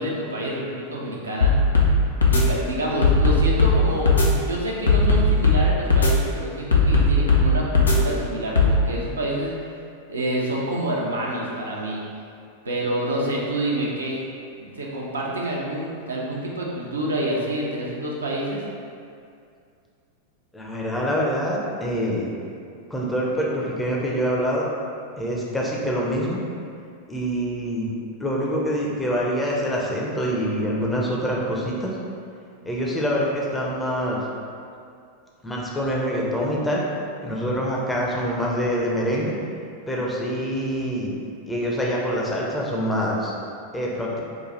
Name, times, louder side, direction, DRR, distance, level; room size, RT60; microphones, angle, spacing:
voice 1, 0.0-1.5 2.2-9.5 10.1-12.0 12.6-14.2 14.6-18.6, right 1 dB, 75° right, -3 dB, 0.8 m, -27 dB
sound 1, 1.4-1.9 2.2-2.4 3.0-3.8 4.1-4.3 4.9-5.6 5.9-6.1 6.7-7.4 7.7-8.0 8.6-8.7, left 5 dB, 75° left, 0.6 m, -17 dB
voice 2, 20.5-22.3 22.9-24.7 25.2-26.4 27.1-27.9 28.2-32.0 32.7-34.2 35.4-36.8 37.2-39.3 39.9-41.1 41.4-43.3 43.7-44.2, equal, 10° left, -4 dB, 0.7 m, -25 dB
4.9 x 2.3 x 4.1 m, 2.4 s
figure-of-eight pair, 90°, 0 cm